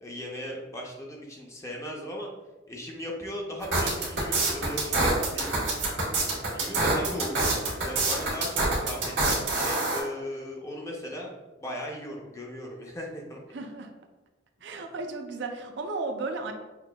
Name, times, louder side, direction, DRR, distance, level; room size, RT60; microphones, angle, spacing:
voice 1, 0.0-2.3 2.7-5.5 6.5-7.4 7.8-11.3 11.6-13.4, equal, 15° left, -1 dB, 0.5 m, -37 dB
sound 1, 3.6-10.0, right 2 dB, 90° right, 1.3 m, -26 dB
voice 2, 13.5-13.9 14.6-16.5, right 3 dB, 65° right, 4 dB, 0.4 m, -34 dB
5.8 x 2.5 x 2.2 m, 1.1 s
head